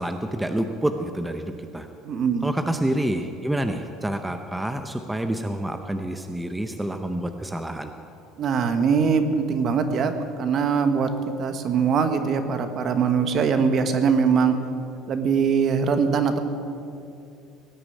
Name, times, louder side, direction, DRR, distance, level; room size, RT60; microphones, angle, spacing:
voice 1, 0.0-1.9 2.4-7.9, right 1 dB, 5° right, 6 dB, 0.7 m, -28 dB
voice 2, 2.0-2.5 8.4-10.1 10.4-11.1 11.4-14.5 15.1-16.4, right 6 dB, 40° right, 8 dB, 1.3 m, -22 dB
18.5 x 6.9 x 9.3 m, 2.6 s
cardioid pair, 130°, 0 cm